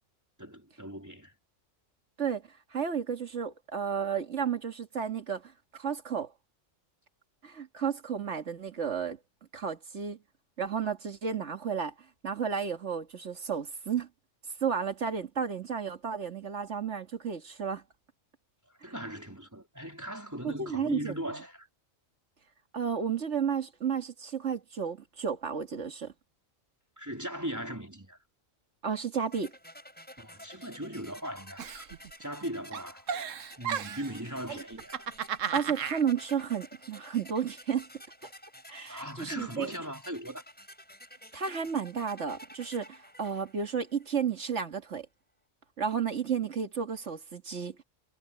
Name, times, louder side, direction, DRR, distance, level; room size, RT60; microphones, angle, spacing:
voice 1, 0.4-1.3 18.8-21.7 27.0-28.2 30.2-33.1 33.6-35.1 38.9-40.4, equal, 15° right, 3.8 m, -39 dB
voice 2, 2.7-6.3 7.4-9.2 9.5-10.2 10.6-11.9 12.2-14.1 14.6-17.8 20.4-21.1 22.7-26.1 28.8-29.5 34.5-34.6 35.5-37.9 38.7-39.7 41.3-45.1 45.8-47.8, right 7 dB, 65° right, 2.2 m, -32 dB
sound 1, 29.3-44.2, equal, 5° left, 4.5 m, -51 dB
Giggle, 31.6-32.4 32.7-34.2 34.7-36.0, right 8 dB, 85° right, 1.3 m, -34 dB
omnidirectional pair, 1.3 m